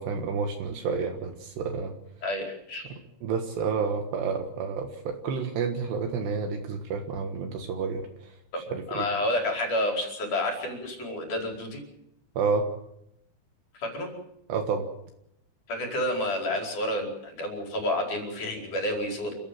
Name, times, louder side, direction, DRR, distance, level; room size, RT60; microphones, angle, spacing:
voice 1, 0.0-2.0 2.9-9.1 12.4-12.7 14.5-14.9, right 5 dB, 70° right, 5 dB, 3.5 m, -30 dB
voice 2, 2.2-2.9 8.5-8.6 8.9-11.8 13.7-14.1 15.7-19.3, left 1 dB, 45° left, 2 dB, 6.1 m, -29 dB
28.0 x 15.5 x 7.6 m, 0.79 s
omnidirectional pair, 5.3 m